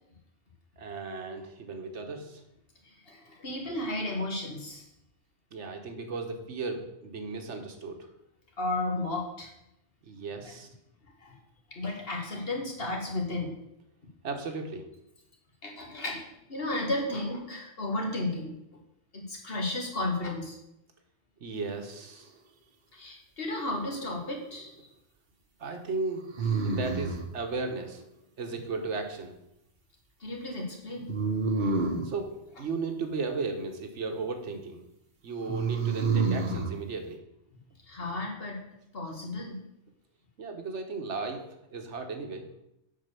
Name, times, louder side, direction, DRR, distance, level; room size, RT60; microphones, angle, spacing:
voice 1, 0.8-2.4 5.5-8.1 10.0-10.7 14.2-14.9 21.4-22.3 25.6-28.0 28.4-29.3 32.0-32.3 32.6-34.8 35.2-37.2 40.4-41.4 41.7-42.5, right 4 dB, 85° right, 5 dB, 1.4 m, -35 dB
voice 2, 2.8-4.9 8.6-9.5 11.2-11.4 11.7-13.5 15.6-18.5 19.1-20.6 22.9-24.7 30.2-31.1 37.9-38.6 38.9-39.6, left 2 dB, 55° left, 0 dB, 1.9 m, -33 dB
sound 1, 23.6-24.3 26.3-27.3 31.1-32.1 35.5-36.7, right 4 dB, 50° right, 1.1 m, -28 dB
7.7 x 4.7 x 6.8 m, 0.85 s
omnidirectional pair, 1.2 m